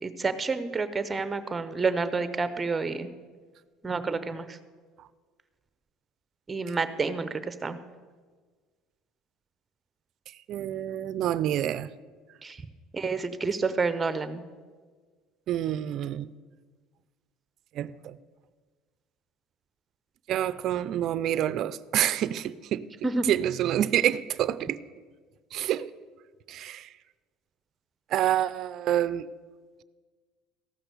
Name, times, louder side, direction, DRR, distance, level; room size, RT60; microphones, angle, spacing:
voice 1, 0.0-3.1 3.8-4.6 6.5-7.8 12.4-12.6 12.9-14.4 23.0-23.2, right 4 dB, 20° right, 12 dB, 0.8 m, -29 dB
voice 2, 10.5-11.9 15.5-16.3 17.8-18.2 20.3-22.9 23.3-24.8 25.5-25.9 26.5-26.9 28.1-29.3, right 11 dB, 55° right, 16 dB, 0.4 m, -27 dB
14.0 x 6.0 x 6.7 m, 1.5 s
supercardioid pair, 95°, 0 cm